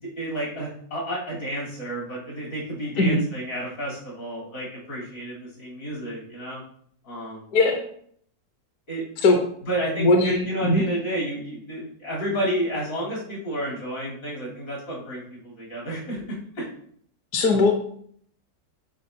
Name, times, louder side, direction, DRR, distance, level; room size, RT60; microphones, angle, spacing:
voice 1, 0.2-6.6 7.0-7.4 8.9-9.0 9.7-16.2 16.6-16.7, equal, 75° left, -6 dB, 3.9 m, -31 dB
voice 2, 7.5-7.8 9.2-9.4 10.0-10.8 17.3-17.7, left 2 dB, 60° left, 2 dB, 1.2 m, -19 dB
10.5 x 4.7 x 2.8 m, 0.62 s
omnidirectional pair, 1.9 m